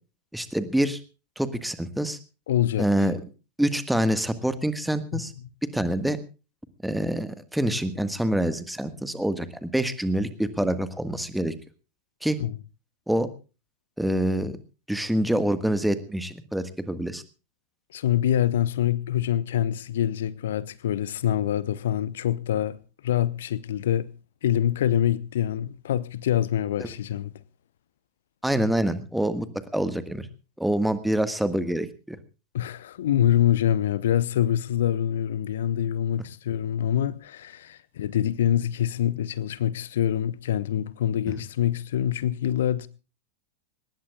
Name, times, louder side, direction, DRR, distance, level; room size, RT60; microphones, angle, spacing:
voice 1, 0.3-1.0 1.4-2.2 2.8-3.2 3.6-5.3 5.6-6.2 6.8-11.5 12.2-12.4 13.1-13.3 14.0-14.6 14.9-17.2 28.4-29.5 29.7-30.3 30.6-32.2, right 1 dB, ahead, 1.5 m, -26 dB
voice 2, 2.5-2.9 5.1-5.2 12.4-12.6 17.9-22.8 23.0-24.1 24.4-27.3 32.5-42.9, left 11 dB, 60° left, 0.8 m, -25 dB
23.0 x 19.5 x 2.4 m
figure-of-eight pair, 90°, 0 cm